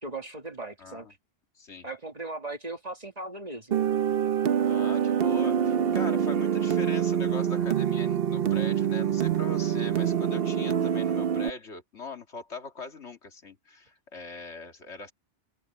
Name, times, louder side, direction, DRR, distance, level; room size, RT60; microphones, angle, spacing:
voice 1, 0.0-1.1 1.8-3.8, right 2 dB, 35° right, 2.2 m, -38 dB
voice 2, 0.8-1.1 1.6-1.9 4.6-15.1, left 3 dB, 75° left, 2.5 m, -41 dB
sound 1, 3.7-11.5, right 8 dB, 60° right, 0.9 m, -25 dB
omnidirectional pair, 1.2 m